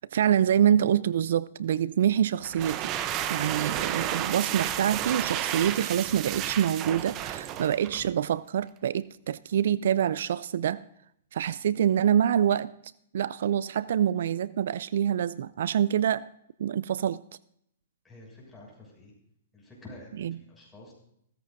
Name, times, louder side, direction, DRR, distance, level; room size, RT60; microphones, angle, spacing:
voice 1, 0.1-2.9 3.3-10.8 11.3-12.7 13.1-16.3 16.6-17.2 20.2-20.4, right 9 dB, 70° right, 0.3 m, -26 dB
sound 1, 2.4-8.1, right 11 dB, 30° right, 0.7 m, -32 dB
voice 2, 18.0-19.1 19.5-20.9, left 2 dB, 10° left, 6.5 m, -49 dB
16.0 x 14.5 x 2.6 m
hypercardioid pair, 135°, 0 cm